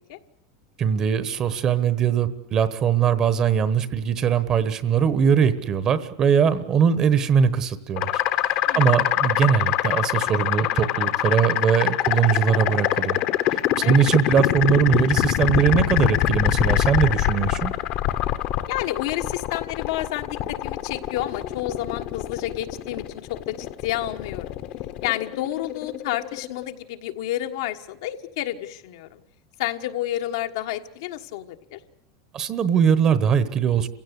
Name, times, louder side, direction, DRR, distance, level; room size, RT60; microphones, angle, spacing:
voice 1, 0.8-13.2 13.5-17.7 32.3-33.9, right 7 dB, 25° right, 14 dB, 1.1 m, -21 dB
sound 1, 8.0-26.7, left 13 dB, 45° left, 1.1 m, -24 dB
voice 2, 18.7-24.4 25.0-29.2 29.6-31.8, left 13 dB, 70° left, 6 dB, 1.4 m, -30 dB
28.0 x 16.5 x 8.2 m, 0.74 s
supercardioid pair, 160°, 2 cm